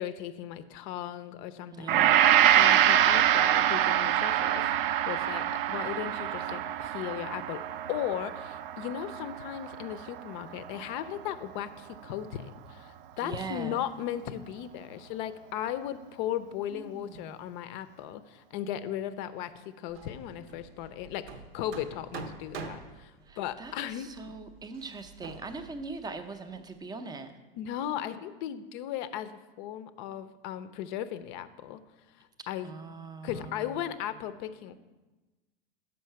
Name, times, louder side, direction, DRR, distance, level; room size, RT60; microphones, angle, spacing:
voice 1, 0.0-4.7 5.1-7.6 7.9-21.3 21.5-24.1 27.6-31.8 32.5-32.7 33.2-34.7, left 11 dB, 50° left, 13 dB, 0.5 m, -36 dB
voice 2, 1.7-2.5 13.2-13.9 16.7-17.3 23.3-27.3 32.6-34.1, right 4 dB, 15° right, 9 dB, 0.5 m, -41 dB
Gong, 1.9-10.3 10.6-10.8, right 11 dB, 60° right, 0.5 m, -25 dB
Hammer, 19.9-26.8, right 4 dB, 75° right, 0.8 m, -46 dB
6.4 x 5.5 x 5.6 m, 1.2 s
hypercardioid pair, 110°, 31 cm